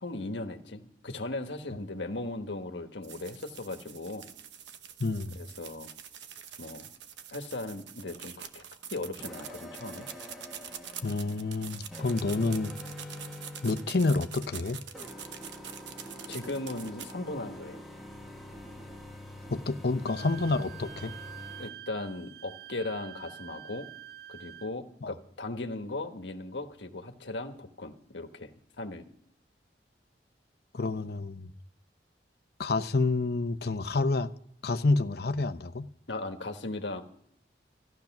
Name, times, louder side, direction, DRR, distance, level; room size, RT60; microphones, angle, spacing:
voice 1, 0.0-4.3 5.3-5.9 6.6-6.9 7.3-8.6 8.9-10.1 16.3-17.8 21.6-23.9 24.3-29.0 36.1-37.0, left 2 dB, 85° left, 1.4 m, -37 dB
sound 1, 3.0-17.1, right 9 dB, 90° right, 0.9 m, -45 dB
voice 2, 5.0-5.4 11.0-12.7 13.6-14.8 19.5-21.1 25.0-25.1 30.7-31.5 32.6-34.3 34.6-35.9, left 3 dB, 60° left, 0.7 m, -28 dB
sound 2, 9.2-21.7, left 1 dB, ahead, 1.4 m, -45 dB
Wind instrument woodwind instrument, 20.1-24.7, right 12 dB, 60° right, 0.6 m, -47 dB
14.5 x 12.0 x 6.0 m
head